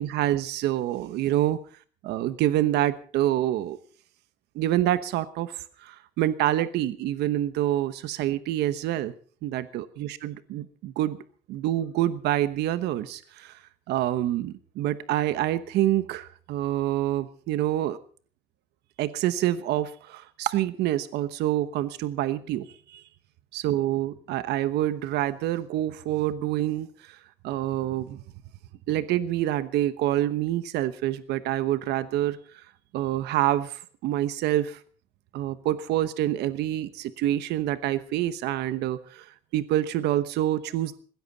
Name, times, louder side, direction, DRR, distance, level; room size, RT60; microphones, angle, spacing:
voice 1, 0.0-1.6 2.0-3.8 4.5-9.1 9.4-11.2 11.5-13.6 13.9-18.0 19.0-23.0 23.5-27.2 27.4-28.2 28.9-32.4 32.9-34.8 35.3-41.0, right 13 dB, 80° right, 13 dB, 1.1 m, -27 dB
20.5 x 16.5 x 4.1 m, 0.43 s
cardioid pair, 110°, 17 cm